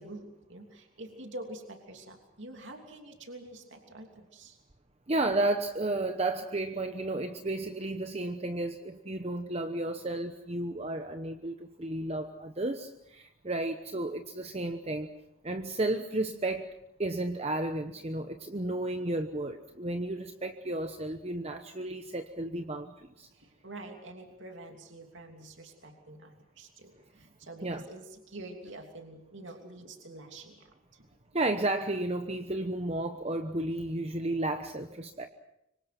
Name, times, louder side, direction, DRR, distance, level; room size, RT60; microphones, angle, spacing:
voice 1, 0.0-4.6 23.3-31.1, right 2 dB, 60° right, 3 dB, 3.0 m, -47 dB
voice 2, 5.1-15.1 15.4-16.7 17.0-23.3 27.6-27.8 31.3-35.3, right 2 dB, 30° right, 7 dB, 1.0 m, -33 dB
25.5 x 25.0 x 6.0 m, 0.81 s
head